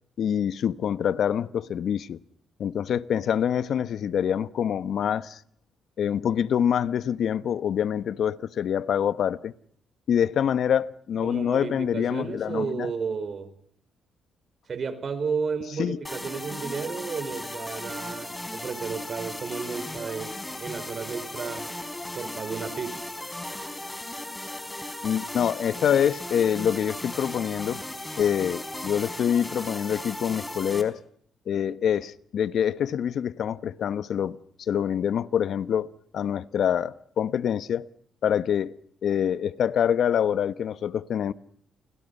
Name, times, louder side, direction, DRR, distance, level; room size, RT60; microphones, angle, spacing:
voice 1, 0.2-2.2 2.6-5.4 6.0-9.5 10.1-12.9 15.8-16.0 25.0-27.8 28.2-31.0 31.5-37.9 38.2-38.7 39.0-41.3, left 9 dB, 65° left, 1.1 m, -25 dB
voice 2, 11.2-13.5 14.7-21.7 22.1-23.0, right 5 dB, 45° right, 5.0 m, -32 dB
sound 1, 16.0-30.8, left 1 dB, 10° left, 4.4 m, -36 dB
30.0 x 28.0 x 5.5 m
cardioid pair, 90°, 0 cm